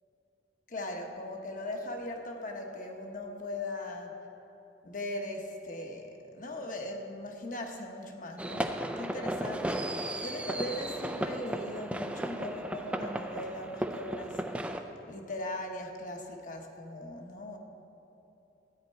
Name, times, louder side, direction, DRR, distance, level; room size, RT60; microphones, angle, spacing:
voice 1, 0.7-4.2 4.8-17.6, left 1 dB, 45° left, 3 dB, 1.0 m, -39 dB
sound 1, 8.4-14.8, right 1 dB, 5° right, 0.4 m, -35 dB
13.0 x 9.5 x 4.5 m, 2.9 s
head